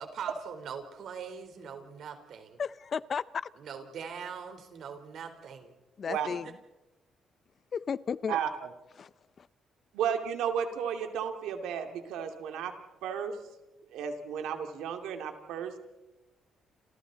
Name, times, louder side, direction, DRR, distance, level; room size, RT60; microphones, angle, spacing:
voice 1, 0.1-2.6 3.6-5.7 6.1-6.5, right 7 dB, 70° right, 6 dB, 4.0 m, -42 dB
voice 2, 2.6-3.2 6.0-6.5 7.7-8.4 9.0-9.1 9.4-9.5, left 6 dB, 45° left, 18 dB, 0.7 m, -33 dB
voice 3, 8.3-8.7 9.9-12.7 13.0-13.4 13.9-15.8, right 8 dB, 90° right, 5 dB, 2.7 m, -33 dB
29.5 x 27.5 x 4.1 m, 1.0 s
cardioid pair, 90°, 0 cm